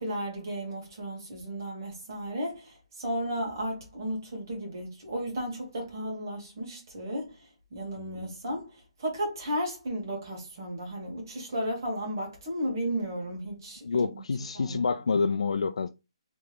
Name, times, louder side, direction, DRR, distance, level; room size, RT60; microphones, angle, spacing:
voice 1, 0.0-14.1 14.5-14.8, equal, 35° right, 1.6 m, -34 dB
voice 2, 13.8-15.9, left 4 dB, 85° left, 0.3 m, -28 dB
3.3 x 3.0 x 3.4 m
hypercardioid pair, 175°, 3 cm